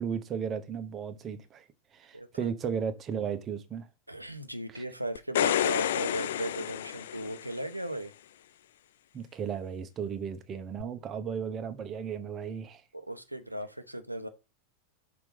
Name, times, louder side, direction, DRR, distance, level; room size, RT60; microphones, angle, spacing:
voice 1, 0.0-3.9 4.7-4.8 9.1-12.8, right 7 dB, 25° right, 1.0 m, -35 dB
voice 2, 2.1-2.5 4.1-8.1 12.9-14.3, right 1 dB, 85° right, 0.8 m, -37 dB
sound 1, 5.2-7.7 10.8-10.9, left 11 dB, 60° left, 0.3 m, -30 dB
6.1 x 4.3 x 5.3 m
figure-of-eight pair, 90°, 0 cm